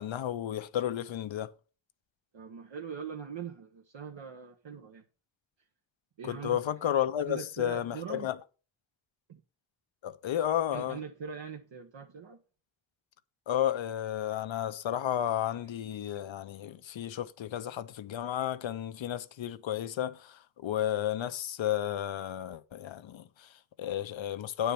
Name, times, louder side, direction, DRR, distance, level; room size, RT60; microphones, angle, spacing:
voice 1, 0.0-1.5 6.2-8.4 10.0-11.0 13.5-24.7, left 11 dB, 90° left, 0.6 m, -32 dB
voice 2, 2.3-5.0 6.2-6.6 7.3-8.3 9.3-9.4 10.7-12.4, right 6 dB, 80° right, 1.0 m, -42 dB
9.2 x 4.5 x 6.8 m
cardioid pair, 45°, 44 cm